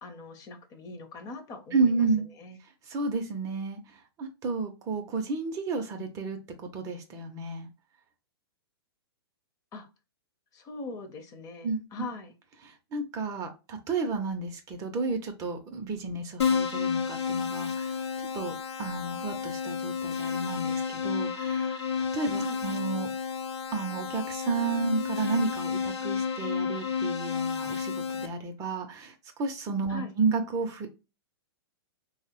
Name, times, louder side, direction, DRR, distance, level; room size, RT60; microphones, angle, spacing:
voice 1, 0.0-2.0 2.4-2.6 9.7-9.9 10.5-12.3 22.3-22.6 29.9-30.1, left 3 dB, 25° left, 0.6 m, -41 dB
voice 2, 1.7-2.2 2.8-7.7 11.6-11.8 12.6-21.8 22.1-23.1 23.7-30.9, right 4 dB, 25° right, 0.4 m, -32 dB
Keyboard (musical), 16.4-28.3, left 6 dB, 85° left, 0.7 m, -31 dB
3.1 x 2.0 x 2.8 m
hypercardioid pair, 130°, 14 cm